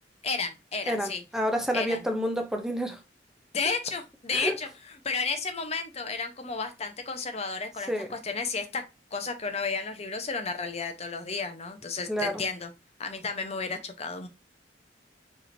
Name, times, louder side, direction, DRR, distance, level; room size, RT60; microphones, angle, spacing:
voice 1, 0.2-1.2 1.7-2.0 3.5-4.7 5.0-8.8 9.1-12.7 13.0-14.3, left 4 dB, 35° left, 0.7 m, -32 dB
voice 2, 0.9-3.0 4.3-4.6 7.9-8.1 12.1-12.3, equal, 5° right, 0.6 m, -29 dB
4.8 x 4.3 x 2.6 m
head